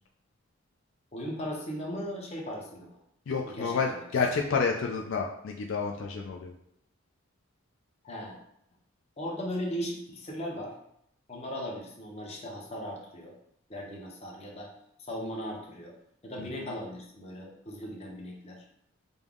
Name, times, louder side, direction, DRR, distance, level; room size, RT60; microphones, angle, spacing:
voice 1, 1.1-3.0 3.4-4.0 8.0-8.4 9.2-10.7 11.3-13.3 13.7-14.7 15.0-15.9 16.2-18.6, equal, 30° left, -1 dB, 0.8 m, -37 dB
voice 2, 3.3-6.5, left 5 dB, 65° left, 1 dB, 0.4 m, -29 dB
5.3 x 2.0 x 3.6 m, 0.75 s
head